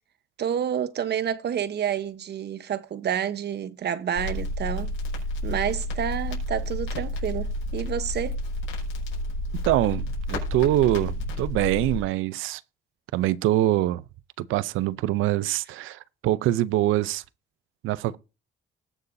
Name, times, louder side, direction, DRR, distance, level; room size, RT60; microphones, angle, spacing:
voice 1, 0.4-4.9 5.4-8.4, right 9 dB, 60° right, 0.9 m, -29 dB
Crackle, 4.2-12.0, left 1 dB, 85° left, 5.5 m, -30 dB
voice 2, 9.6-12.6 13.1-14.0 14.4-17.2 17.8-18.2, right 14 dB, 90° right, 0.5 m, -24 dB
20.0 x 6.8 x 2.7 m
cardioid pair, 90°, 20 cm